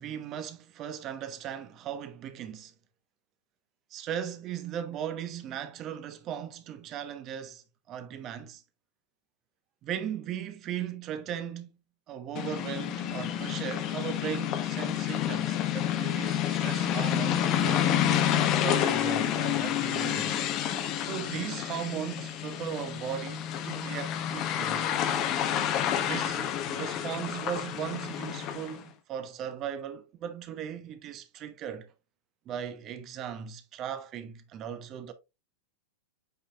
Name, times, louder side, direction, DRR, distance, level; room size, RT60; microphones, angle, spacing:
voice 1, 0.0-2.7 3.9-8.6 9.8-11.8 12.1-17.9 18.6-20.4 21.0-24.9 26.1-31.9 32.5-35.1, right 9 dB, 35° right, 1.1 m, -37 dB
sound 1, 12.3-28.8, left 10 dB, 35° left, 1.0 m, -29 dB
8.4 x 5.0 x 2.4 m
figure-of-eight pair, 90°, 0 cm